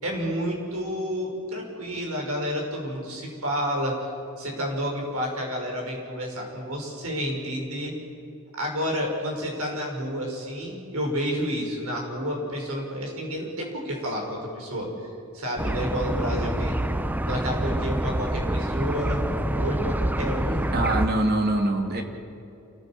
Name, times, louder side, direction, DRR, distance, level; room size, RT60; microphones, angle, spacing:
voice 1, 0.0-4.1 4.4-7.9 8.5-14.9 15.3-16.8 17.3-20.7, equal, 85° right, 0 dB, 5.9 m, -30 dB
sound 1, 15.6-21.1, right 1 dB, 10° right, 0.6 m, -26 dB
voice 2, 20.7-22.0, right 1 dB, 45° right, 3 dB, 2.5 m, -23 dB
28.0 x 15.5 x 7.6 m, 2.6 s
head